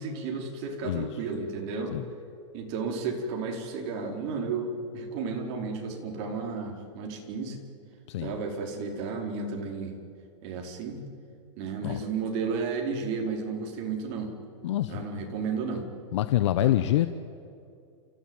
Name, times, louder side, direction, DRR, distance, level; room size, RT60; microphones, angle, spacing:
voice 1, 0.0-2.0 2.5-7.6 8.2-10.0 10.4-11.0 11.6-14.3 14.9-15.9 16.6-16.7, right 4 dB, 45° right, 2 dB, 4.8 m, -33 dB
voice 2, 8.1-8.4 11.8-12.0 14.6-15.0 16.1-17.1, left 13 dB, 70° left, 11 dB, 1.0 m, -26 dB
29.5 x 15.0 x 9.2 m, 2.4 s
supercardioid pair, 140°, 16 cm